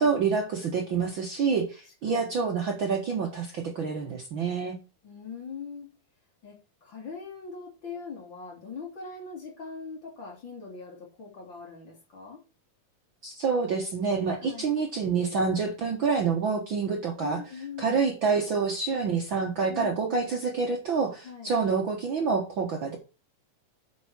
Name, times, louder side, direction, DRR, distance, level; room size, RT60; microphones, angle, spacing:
voice 1, 0.0-4.7 13.2-17.4 17.8-23.0, right 5 dB, 50° right, 2 dB, 1.7 m, -27 dB
voice 2, 2.0-2.4 5.0-5.9 6.4-12.4 14.4-14.7 17.2-18.0 19.7-20.3 21.2-21.6, left 5 dB, 40° left, 0 dB, 3.4 m, -41 dB
8.0 x 5.7 x 6.1 m, 0.32 s
omnidirectional pair, 3.4 m